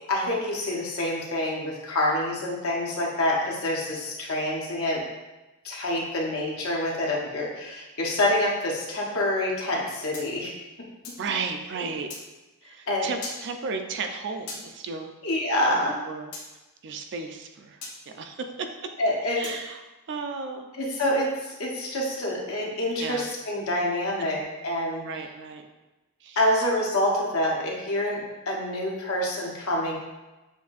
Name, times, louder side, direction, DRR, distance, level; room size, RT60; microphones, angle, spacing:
voice 1, 0.1-5.0 5.6-10.5 12.9-13.1 15.2-16.0 19.0-19.5 20.8-25.0 26.4-30.0, left 1 dB, 70° left, -2 dB, 1.0 m, -27 dB
sound 1, 10.1-11.3 12.1-12.2 13.2-13.4 14.5-14.6 16.3-16.5 17.8-18.0 19.4-19.6, left 3 dB, 85° left, 1.2 m, -38 dB
voice 2, 11.2-12.1 12.6-15.1 15.7-16.3 16.8-17.8 18.1-18.9 19.3-19.8 20.1-20.7 23.0-23.3 25.0-25.6 26.2-26.4, right 4 dB, 55° right, 5 dB, 0.4 m, -34 dB
7.1 x 2.6 x 2.5 m, 1.1 s
head